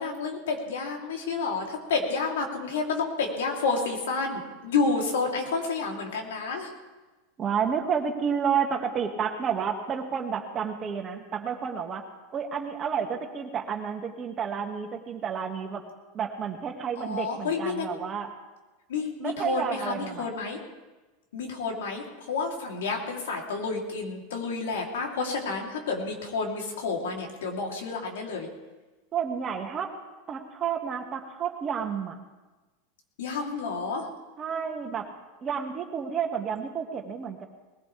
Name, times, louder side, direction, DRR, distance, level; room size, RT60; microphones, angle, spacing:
voice 1, 0.0-6.7 17.0-18.0 18.9-20.6 21.3-28.5 33.2-34.1, left 4 dB, 90° left, 0 dB, 3.2 m, -30 dB
voice 2, 7.4-12.1 12.3-15.8 16.1-18.3 19.2-20.3 29.1-29.9 30.3-32.2 34.4-35.1 35.4-37.5, right 7 dB, 30° right, 3 dB, 2.0 m, -30 dB
20.5 x 16.0 x 3.4 m, 1.2 s
supercardioid pair, 125°, 0 cm